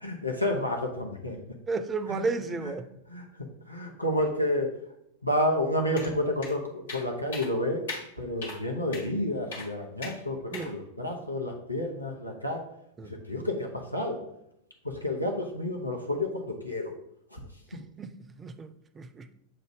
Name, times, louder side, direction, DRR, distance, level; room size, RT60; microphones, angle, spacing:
voice 1, 0.0-1.4 2.1-2.2 3.1-3.2 3.7-4.7 5.2-7.9 8.2-12.6 13.3-14.2 14.8-16.9 17.3-17.4, left 1 dB, 90° left, 0.8 m, -30 dB
voice 2, 1.7-2.9 10.5-10.7 13.0-13.1 17.7-19.3, right 4 dB, 20° right, 0.4 m, -33 dB
sound 1, 6.0-6.1 6.4-6.5 6.9-7.1 7.3-7.5 7.9-8.0 8.4-8.6 8.9-9.1 9.5-9.7 10.0-10.2 10.5-10.7, left 3 dB, 60° left, 1.6 m, -38 dB
7.7 x 2.6 x 4.8 m
figure-of-eight pair, 90°, 0 cm